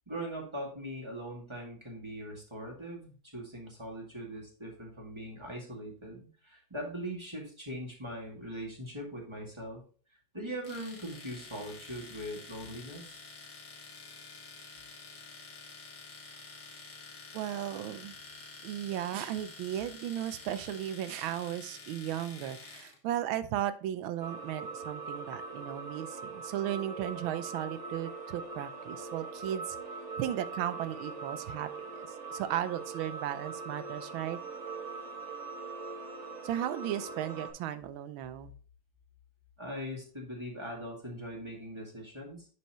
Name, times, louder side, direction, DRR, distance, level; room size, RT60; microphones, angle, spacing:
voice 1, 0.1-9.8 10.3-13.2 39.6-42.5, equal, 15° right, -2 dB, 2.0 m, -41 dB
Domestic sounds home sounds, 10.6-23.0, left 4 dB, 60° left, 1.9 m, -49 dB
voice 2, 17.3-18.2 18.6-29.8 30.2-34.4 36.4-38.5, right 11 dB, 90° right, 12 dB, 1.4 m, -35 dB
sound 1, 24.2-37.5, right 4 dB, 40° right, 1.6 m, -42 dB
10.0 x 4.6 x 3.0 m, 0.41 s
omnidirectional pair, 2.2 m